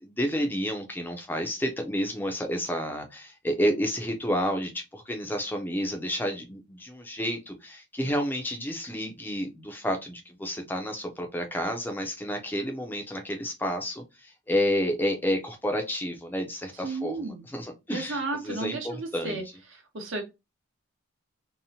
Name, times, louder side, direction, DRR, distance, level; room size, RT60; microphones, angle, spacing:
voice 1, 0.0-19.4, equal, 10° left, 0.4 m, -30 dB
voice 2, 16.8-17.4 17.9-19.4 19.7-20.2, right 3 dB, 65° right, 0.9 m, -33 dB
2.8 x 2.1 x 2.7 m
head